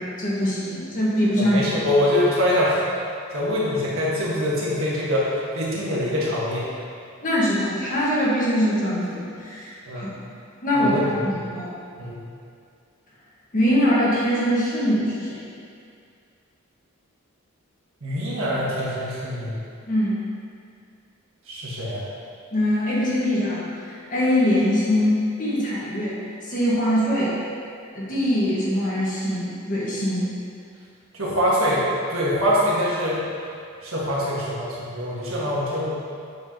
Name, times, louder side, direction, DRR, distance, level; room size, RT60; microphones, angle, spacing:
voice 1, 0.0-1.8 7.2-10.2 10.6-11.7 13.5-15.4 19.9-20.2 22.5-26.2 26.4-27.4 27.9-30.3, equal, 40° left, -7 dB, 1.4 m, -23 dB
voice 2, 1.4-2.8 3.3-6.6 9.9-10.1 10.7-11.3 12.0-12.1 18.0-19.5 21.5-22.0 31.1-33.2 33.8-36.0, equal, 70° right, -6 dB, 1.5 m, -24 dB
8.4 x 4.8 x 2.9 m, 2.4 s
head